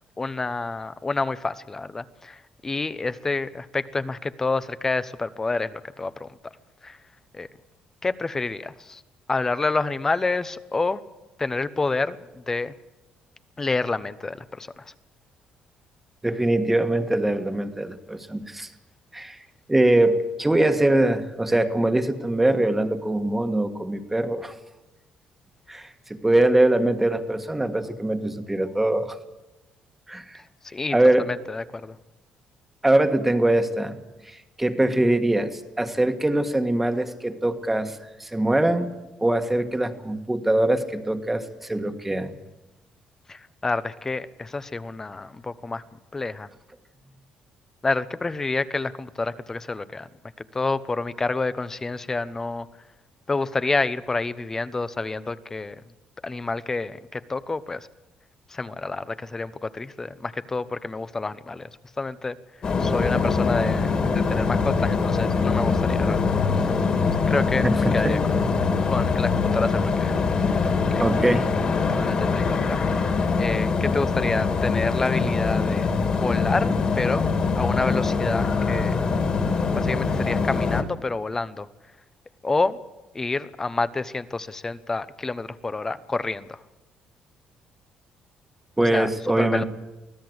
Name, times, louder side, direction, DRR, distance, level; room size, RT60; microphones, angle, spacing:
voice 1, 0.2-6.3 6.8-7.0 7.3-7.5 8.0-9.0 9.3-11.0 11.4-12.7 13.6-14.9 30.7-30.9 31.3-32.0 43.3-45.8 46.1-46.5 47.8-50.1 50.5-52.7 53.3-55.8 56.2-57.9 58.5-61.7 62.0-62.4 62.8-66.3 67.3-68.4 68.9-70.2 70.5-71.0 71.9-72.8 73.4-77.3 77.6-79.0 79.7-81.7 82.4-82.8 83.1-86.6 88.8-89.1 89.4-89.6, left 3 dB, 20° left, 15 dB, 0.9 m, -28 dB
voice 2, 16.2-18.7 19.1-19.4 19.7-24.6 25.7-29.2 30.1-30.4 30.9-31.3 32.8-34.0 34.2-38.9 39.2-42.3 67.6-68.2 71.0-71.5 88.8-89.6, right 1 dB, 10° right, 7 dB, 1.6 m, -22 dB
sound 1, 62.6-80.8, left 4 dB, 35° left, 2.8 m, -23 dB
24.5 x 16.5 x 8.0 m, 1.1 s
cardioid pair, 145°, 3 cm